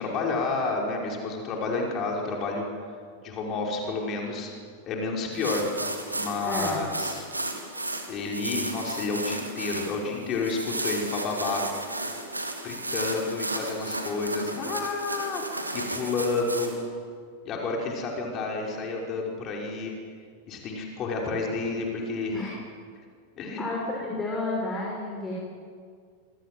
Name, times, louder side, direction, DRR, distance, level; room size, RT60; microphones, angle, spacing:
voice 1, 0.0-2.6 3.2-4.5 4.9-5.7 6.1-7.3 8.1-11.6 12.6-15.4 15.7-16.7 17.4-19.9 20.5-22.3 23.4-23.6, left 3 dB, 35° left, -1 dB, 5.6 m, -30 dB
sound 1, 5.3-16.7, right 2 dB, 85° right, 3.2 m, -33 dB
voice 2, 6.4-6.8 22.3-22.6 23.6-25.3, left 2 dB, 15° left, -4 dB, 6.7 m, -31 dB
26.5 x 26.5 x 7.9 m, 2.1 s
figure-of-eight pair, 90°, 0 cm